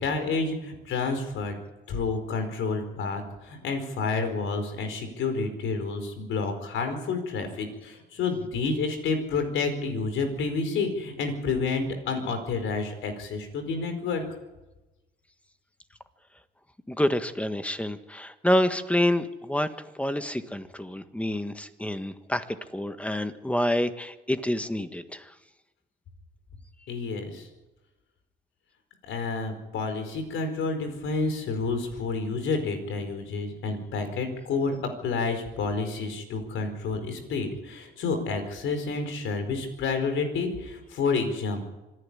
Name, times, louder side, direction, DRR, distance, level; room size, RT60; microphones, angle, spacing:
voice 1, 0.0-1.6 1.9-14.2 26.9-27.5 29.0-41.7, left 4 dB, 80° left, 7 dB, 4.7 m, -29 dB
voice 2, 16.9-19.7 19.9-22.4 22.7-25.3, left 1 dB, 5° left, 9 dB, 1.6 m, -27 dB
26.0 x 11.0 x 10.0 m, 1.1 s
cardioid pair, 90°, 20 cm